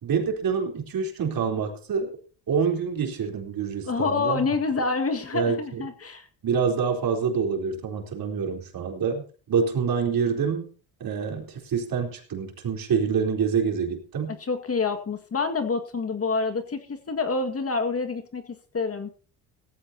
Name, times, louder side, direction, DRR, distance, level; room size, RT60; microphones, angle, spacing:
voice 1, 0.0-2.2 2.5-4.5 5.3-5.8 6.4-10.7 11.0-14.3, right 6 dB, 55° right, 2 dB, 4.0 m, -26 dB
voice 2, 3.9-6.3 14.3-19.1, left 4 dB, 35° left, 7 dB, 1.9 m, -27 dB
17.0 x 15.0 x 2.8 m, 0.38 s
supercardioid pair, 85°, 42 cm